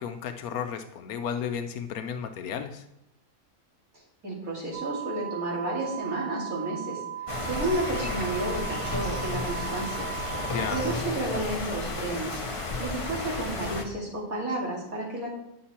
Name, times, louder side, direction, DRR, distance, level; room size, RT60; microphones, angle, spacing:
voice 1, 0.0-2.8 10.4-10.9, left 7 dB, 85° left, 7 dB, 1.1 m, -33 dB
voice 2, 3.9-10.1 10.7-12.4 12.8-15.3, right 1 dB, 75° right, -4 dB, 3.0 m, -32 dB
sound 1, 4.7-11.0, right 11 dB, 50° right, 4.0 m, -37 dB
sound 2, 7.3-13.8, left 2 dB, 25° left, 0.9 m, -32 dB
10.0 x 5.9 x 4.3 m, 0.83 s
omnidirectional pair, 1.5 m